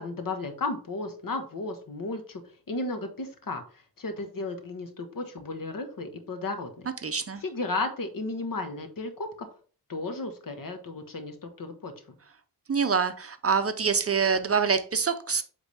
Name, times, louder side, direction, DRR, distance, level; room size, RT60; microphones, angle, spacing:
voice 1, 0.0-2.4 2.7-9.3 9.9-12.2, left 3 dB, 60° left, 6 dB, 1.4 m, -34 dB
voice 2, 7.0-7.4 12.7-15.4, right 6 dB, 40° right, 10 dB, 0.6 m, -25 dB
8.4 x 3.7 x 3.4 m, 0.41 s
wide cardioid pair, 100°, 38 cm